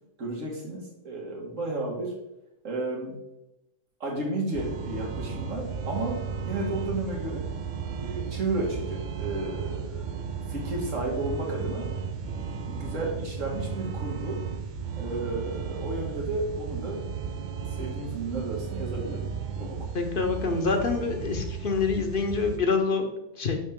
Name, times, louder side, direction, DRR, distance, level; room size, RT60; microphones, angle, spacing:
voice 1, 0.2-2.1 2.6-3.2 4.0-6.2 6.4-7.4 8.0-11.9 12.6-14.4 15.0-17.0 17.6-19.2 19.6-19.9, right 2 dB, 85° right, -1 dB, 2.0 m, -33 dB
sound 1, 4.5-22.6, right 6 dB, 60° right, 0.5 m, -34 dB
voice 2, 19.9-23.6, left 4 dB, 50° left, 4 dB, 0.9 m, -26 dB
6.3 x 5.7 x 3.6 m, 0.89 s
omnidirectional pair, 1.3 m